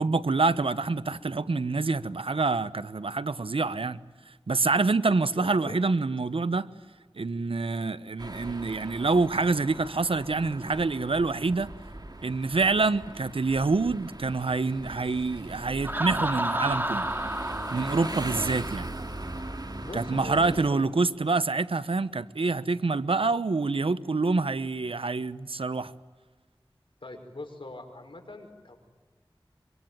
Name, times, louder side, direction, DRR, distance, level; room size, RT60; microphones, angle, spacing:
voice 1, 0.0-4.0 4.5-6.7 7.2-11.7 12.2-17.0 17.7-18.9 19.9-25.9, right 3 dB, 90° right, 0.9 m, -26 dB
voice 2, 5.2-5.8 19.8-21.1 27.0-28.8, left 2 dB, 70° left, 5.8 m, -42 dB
sound 1, 8.2-20.7, right 2 dB, 50° right, 2.3 m, -40 dB
Laughter, 15.8-19.5, right 1 dB, 20° right, 2.1 m, -32 dB
25.0 x 24.5 x 9.1 m
wide cardioid pair, 40°, 9 cm